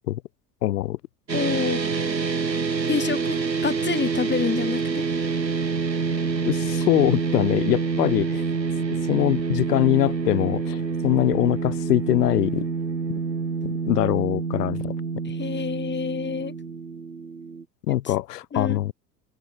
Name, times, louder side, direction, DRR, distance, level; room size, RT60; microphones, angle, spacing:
voice 1, 0.6-1.0 6.4-8.4 9.1-12.7 13.6-14.9 17.9-18.9, left 14 dB, 70° left, 5.9 m, -23 dB
voice 2, 1.3-2.0 2.9-5.0 15.2-16.5 17.9-18.1 18.5-18.8, left 6 dB, 20° left, 4.7 m, -28 dB
sound 1, 1.3-17.6, right 5 dB, 90° right, 6.7 m, -27 dB
figure-of-eight pair, 80°, 49 cm